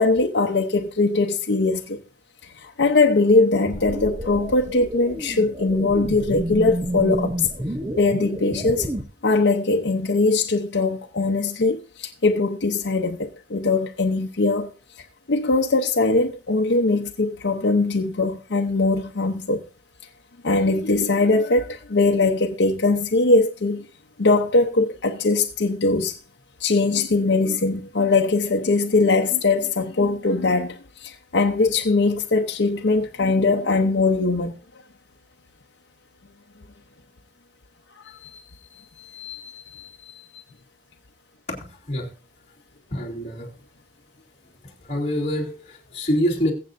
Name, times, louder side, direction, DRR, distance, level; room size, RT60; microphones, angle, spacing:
voice 1, 0.0-2.0 2.4-7.5 8.0-8.9 9.2-14.7 15.3-19.6 20.4-23.8 24.2-26.2 26.6-34.6 38.0-40.4, left 3 dB, 80° left, 0.8 m, -21 dB
sound 1, 3.7-9.0, right 1 dB, 20° right, 0.8 m, -30 dB
voice 2, 41.5-42.1 42.9-43.5 44.6-46.5, equal, 35° left, 2.9 m, -26 dB
22.0 x 7.7 x 2.6 m
head